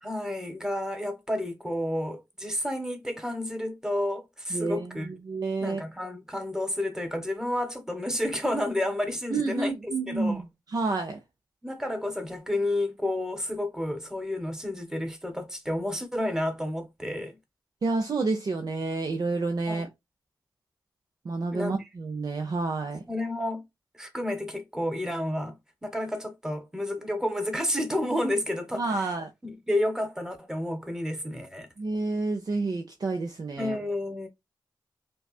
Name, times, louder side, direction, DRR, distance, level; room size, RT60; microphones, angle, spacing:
voice 1, 0.0-5.1 5.6-10.4 11.6-17.4 19.7-19.8 21.5-21.8 23.1-23.6 24.0-25.5 25.8-29.1 29.4-31.7 33.6-34.3, left 1 dB, 5° right, 1.2 m, -30 dB
voice 2, 4.5-5.8 9.3-11.2 17.8-19.9 21.2-23.0 28.8-29.3 31.8-33.8, right 3 dB, 55° right, 0.8 m, -29 dB
5.3 x 2.4 x 2.3 m
cardioid pair, 75°, 8 cm